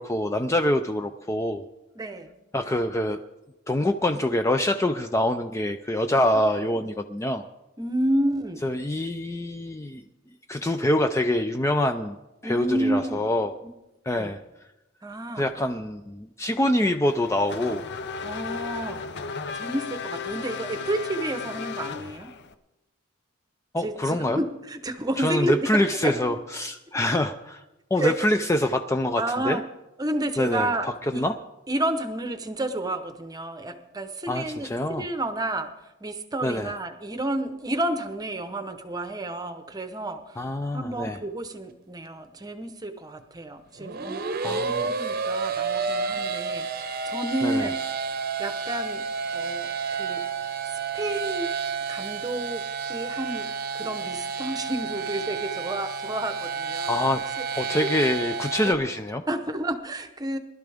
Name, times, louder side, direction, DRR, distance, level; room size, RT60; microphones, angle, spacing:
voice 1, 0.0-1.6 2.5-3.2 3.7-7.5 8.6-10.0 10.5-12.2 12.4-13.5 14.1-14.4 15.4-17.8 23.7-24.4 25.2-27.6 27.9-29.6 30.4-31.3 34.3-35.0 36.4-36.7 40.4-41.2 44.4-44.9 47.4-47.7 56.9-57.2 57.5-59.2, left 1 dB, 15° left, 7 dB, 0.4 m, -25 dB
voice 2, 1.9-2.3 6.8-6.9 7.8-8.6 12.4-13.2 13.6-13.7 14.2-14.3 15.0-15.5 18.2-19.0 19.5-22.3 23.8-26.3 28.0-28.3 29.2-29.6 30.0-31.2 31.7-35.7 36.0-40.5 40.7-47.8 48.4-49.0 49.3-51.5 51.9-57.2 57.8-57.9 58.7-58.8 59.3-60.4, right 1 dB, 20° right, 8 dB, 0.9 m, -30 dB
Race car auto racing / Accelerating revving vroom, 17.1-22.5, left 5 dB, 55° left, 0.7 m, -35 dB
sound 1, 43.8-58.7, right 5 dB, 45° right, 0.8 m, -30 dB
20.5 x 12.0 x 3.5 m, 0.97 s
head